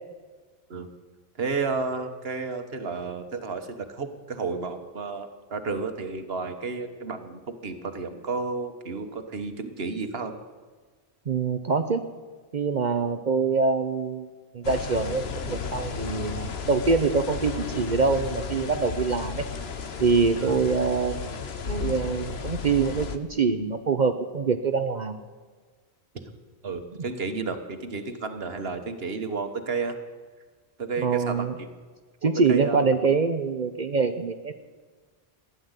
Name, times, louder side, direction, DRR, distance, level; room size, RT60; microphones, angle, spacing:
voice 1, 1.4-10.3 20.4-20.6 26.1-26.3 26.6-30.0 30.8-31.7 32.2-32.8, right 4 dB, 70° right, 8 dB, 1.6 m, -32 dB
voice 2, 11.3-12.1 12.5-14.3 14.5-19.4 20.0-21.3 21.7-25.2 31.0-31.5 32.2-34.5, right 4 dB, 50° right, 9 dB, 0.9 m, -24 dB
sound 1, 14.6-23.2, left 6 dB, 75° left, 1.3 m, -33 dB
16.0 x 11.0 x 8.1 m, 1.4 s
omnidirectional pair, 1.0 m